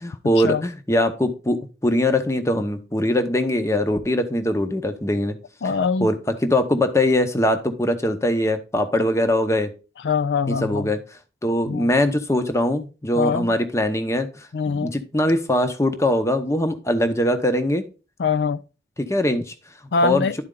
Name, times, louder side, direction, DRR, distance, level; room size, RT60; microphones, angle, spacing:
voice 1, 0.0-5.4 6.0-9.7 10.6-11.0 11.4-17.8 19.0-19.5 20.0-20.3, left 1 dB, 15° left, 0.8 m, -22 dB
voice 2, 5.6-6.1 10.0-10.9 11.7-11.9 13.2-13.5 14.5-14.9 18.2-18.6 19.9-20.4, left 5 dB, 80° left, 0.4 m, -23 dB
11.0 x 4.3 x 3.8 m
head